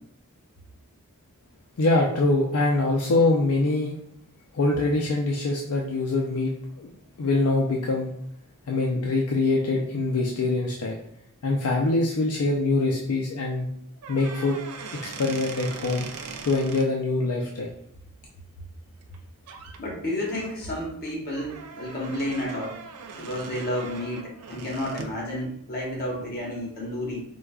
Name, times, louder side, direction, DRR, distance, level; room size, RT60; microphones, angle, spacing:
voice 1, 1.8-4.0 4.5-6.5 6.8-6.9 7.2-8.1 8.7-11.0 11.4-13.7 14.1-14.6 14.9-16.1 16.4-17.7, left 2 dB, 70° left, -1 dB, 0.4 m, -24 dB
sound 1, 14.0-16.9 19.0-19.2 19.5-19.8 20.3-25.2, right 5 dB, 85° right, 0.4 m, -41 dB
voice 2, 19.8-22.8 23.1-27.2, left 1 dB, 45° left, -3 dB, 1.1 m, -31 dB
4.7 x 2.2 x 2.3 m, 0.70 s
head